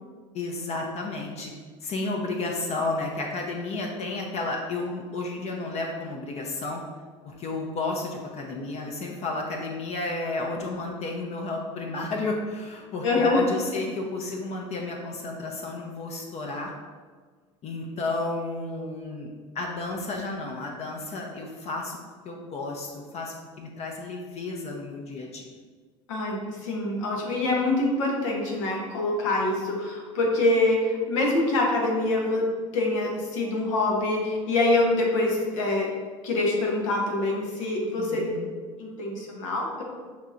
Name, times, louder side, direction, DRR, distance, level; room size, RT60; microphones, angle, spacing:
voice 1, 0.3-1.5 1.8-6.8 7.2-16.7 17.6-22.0 22.2-25.5 38.0-38.5, left 2 dB, 40° left, 1 dB, 0.6 m, -32 dB
voice 2, 13.0-13.4 26.1-32.4 32.7-35.9 36.2-38.3 38.8-39.8, left 2 dB, 80° left, -1 dB, 0.9 m, -25 dB
5.6 x 2.8 x 2.4 m, 1.5 s
hypercardioid pair, 80°, 16 cm